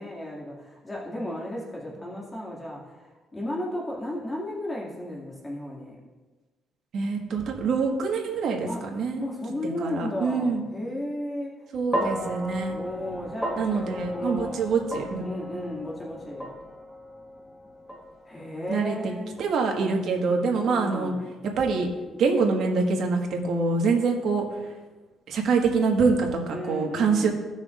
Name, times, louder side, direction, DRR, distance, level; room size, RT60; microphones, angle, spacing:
voice 1, 0.0-6.0 8.7-8.8 9.2-11.5 12.7-14.6 15.2-16.5 18.3-19.4 20.6-21.3 26.5-27.3, left 1 dB, 25° left, -5 dB, 2.3 m, -34 dB
voice 2, 6.9-9.2 9.8-10.6 11.7-12.8 13.6-15.2 18.7-19.1 19.4-21.1 21.6-21.9 22.2-24.4 25.3-27.3, right 4 dB, 70° right, 2 dB, 1.6 m, -25 dB
sound 1, 11.9-20.2, equal, ahead, 1.2 m, -35 dB
17.0 x 6.2 x 2.5 m, 1.3 s
cardioid pair, 90°, 0 cm